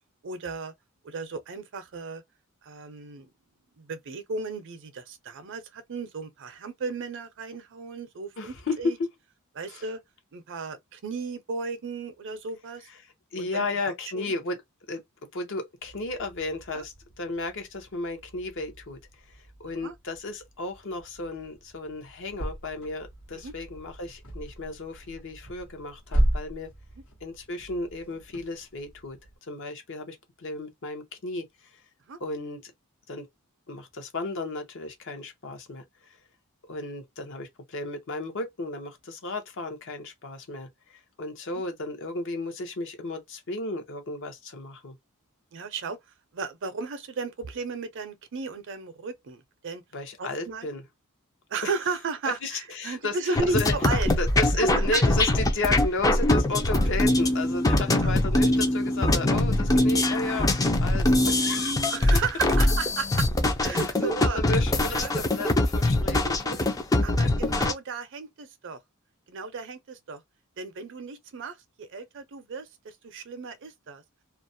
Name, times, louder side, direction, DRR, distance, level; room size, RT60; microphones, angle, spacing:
voice 1, 0.2-0.7 1.0-2.2 2.6-3.3 3.8-9.0 9.6-10.0 10.3-12.9 13.4-13.8 14.1-14.3 16.7-16.8 19.8-19.9 23.3-23.5 32.1-32.2 45.5-46.0 46.3-49.8 50.2-50.7 51.5-54.1 54.6-55.0 55.7-55.8 56.9-57.0 57.9-58.1 61.8-63.3 63.6-64.4 64.9-65.1 66.4-66.6 67.0-68.8 69.3-70.2 70.6-74.0, right 4 dB, 60° right, 0.5 m, -35 dB
voice 2, 8.4-9.1 9.7-9.8 13.0-14.6 14.9-15.0 15.3-26.7 27.2-29.2 29.5-31.8 32.2-32.7 33.1-33.3 33.7-36.2 36.7-44.9 49.9-50.8 51.6-51.7 52.2-53.7 54.2-60.5 60.8-62.0 63.7-66.7, left 2 dB, 60° left, 0.7 m, -34 dB
sound 1, 15.8-29.4, right 1 dB, 75° left, 1.0 m, -36 dB
sound 2, 53.4-67.7, left 1 dB, 15° left, 0.4 m, -23 dB
2.4 x 2.0 x 2.6 m
head